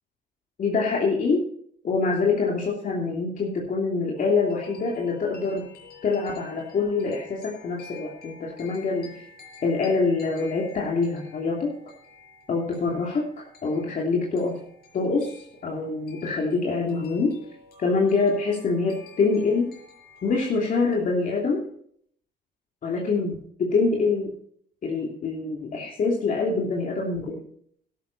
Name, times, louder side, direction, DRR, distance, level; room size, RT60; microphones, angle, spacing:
voice 1, 0.6-1.4 1.8-5.7 6.0-9.2 9.6-11.7 12.5-14.6 14.9-17.3 17.8-19.7 20.2-21.7 22.8-24.4 24.8-27.4, left 4 dB, 50° left, -2 dB, 3.0 m, -25 dB
sound 1, 4.2-21.0, left 5 dB, 70° left, 6.2 m, -50 dB
13.0 x 12.5 x 4.2 m, 0.63 s
cardioid pair, 100°, 17 cm